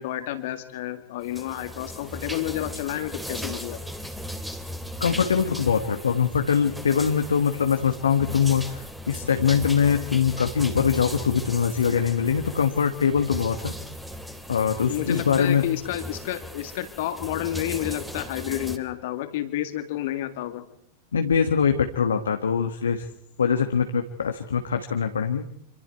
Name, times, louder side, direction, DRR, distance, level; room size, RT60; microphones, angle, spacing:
voice 1, 0.0-3.8 14.9-20.7, left 13 dB, 55° left, 9 dB, 2.0 m, -30 dB
sound 1, 1.2-18.8, equal, 5° right, 2.7 m, -37 dB
voice 2, 5.0-13.7 14.5-15.6 21.1-23.0 23.4-25.4, left 7 dB, 70° left, 5 dB, 1.4 m, -23 dB
26.5 x 26.0 x 4.6 m, 0.71 s
figure-of-eight pair, 90°, 0 cm